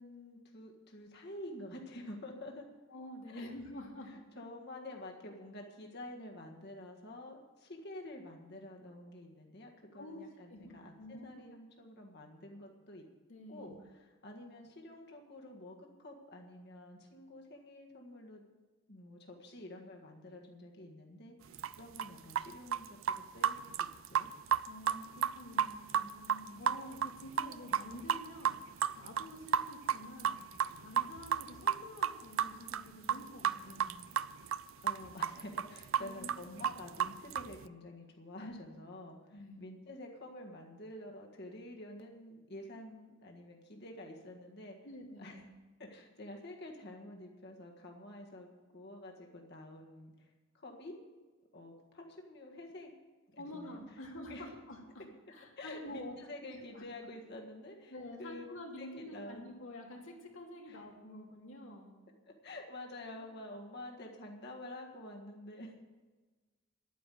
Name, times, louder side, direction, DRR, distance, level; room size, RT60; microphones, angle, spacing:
voice 1, 0.0-2.7 3.3-3.5 4.1-13.0 13.5-18.4 18.9-24.3 34.8-44.8 45.2-45.4 45.8-48.5 48.7-50.1 50.5-51.0 51.5-52.9 53.3-53.8 54.3-54.5 55.6-57.9 58.2-58.4 58.8-59.4 60.7-60.8 62.2-65.7, left 1 dB, 55° left, 1 dB, 1.8 m, -49 dB
voice 2, 2.9-4.1 9.9-10.2 10.5-11.4 13.3-13.8 24.7-30.4 30.8-34.0 36.0-36.7 38.3-38.5 39.3-39.6 44.8-45.4 53.4-56.1 56.5-56.8 57.9-61.9, left 1 dB, 80° left, 0 dB, 2.6 m, -48 dB
sound 1, 21.5-22.5 22.7-23.2 23.4-28.2 28.4-28.5 28.8-34.6 34.9-37.6, right 8 dB, 80° right, 0.4 m, -31 dB
11.0 x 9.3 x 7.7 m, 1.3 s
head